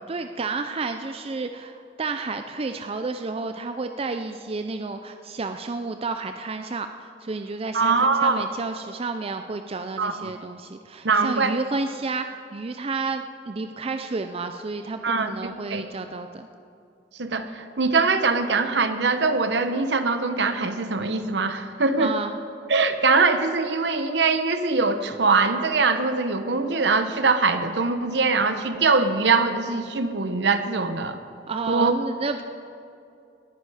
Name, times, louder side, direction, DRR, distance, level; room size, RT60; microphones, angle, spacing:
voice 1, 0.1-16.5 22.0-22.4 31.5-32.4, right 3 dB, 30° right, 7 dB, 0.5 m, -31 dB
voice 2, 7.7-8.4 10.0-10.3 11.0-11.6 15.0-15.3 15.7-15.9 17.2-22.1 22.7-31.2 31.7-31.9, right 4 dB, 65° right, 9 dB, 0.9 m, -22 dB
19.0 x 9.8 x 4.9 m, 2.5 s
head